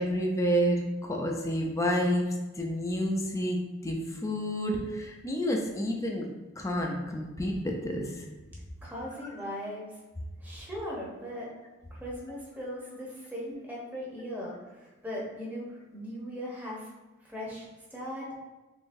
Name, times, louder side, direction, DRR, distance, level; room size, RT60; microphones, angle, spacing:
voice 1, 0.0-2.3 2.6-6.3 6.6-8.3 18.3-18.4, equal, 15° left, 0 dB, 0.4 m, -29 dB
voice 2, 8.8-9.9 10.4-11.5 11.9-16.9 17.2-18.3, equal, 10° right, -5 dB, 0.9 m, -39 dB
3.7 x 3.3 x 2.6 m, 1.1 s
head